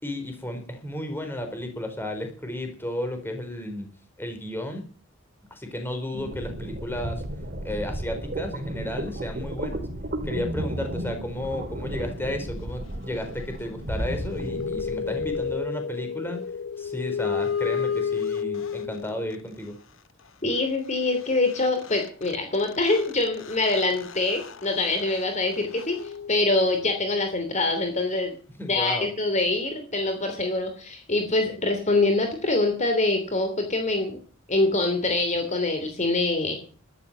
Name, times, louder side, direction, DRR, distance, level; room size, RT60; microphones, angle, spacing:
voice 1, 0.0-3.9 4.2-4.8 5.5-7.2 7.6-9.9 10.2-16.4 16.8-19.7 28.6-29.1, left 1 dB, 10° left, 5 dB, 4.3 m, -33 dB
sound 1, 6.1-15.6, right 1 dB, 50° right, 2.7 m, -33 dB
sound 2, 14.0-19.3 21.2-21.3 21.5-27.0, left 6 dB, 70° left, 1.0 m, -32 dB
voice 2, 20.4-28.3 28.7-34.2 34.5-36.6, left 2 dB, 35° left, 6 dB, 3.0 m, -24 dB
13.0 x 11.5 x 7.4 m, 0.39 s
head